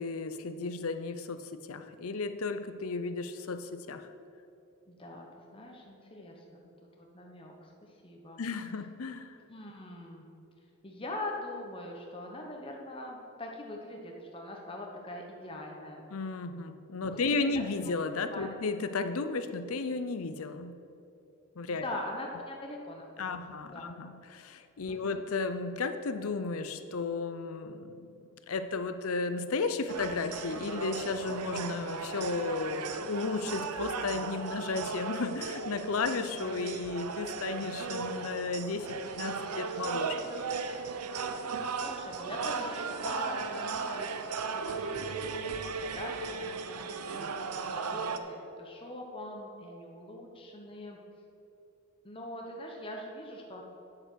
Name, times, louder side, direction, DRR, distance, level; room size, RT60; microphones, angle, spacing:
voice 1, 0.0-4.1 8.4-9.4 16.1-20.8 21.6-21.9 23.2-28.1 28.5-40.2, left 4 dB, 70° left, 10 dB, 0.6 m, -34 dB
voice 2, 4.9-5.3 5.5-6.6 7.0-7.7 8.0-8.4 9.5-10.3 10.8-16.1 17.3-17.6 18.3-18.6 21.7-23.9 24.9-25.2 41.4-45.5 45.8-51.0 52.0-53.6, left 1 dB, 25° left, 0 dB, 1.0 m, -43 dB
sound 1, 29.9-48.2, right 4 dB, 90° right, 0.7 m, -36 dB
8.9 x 7.9 x 6.3 m, 2.7 s
head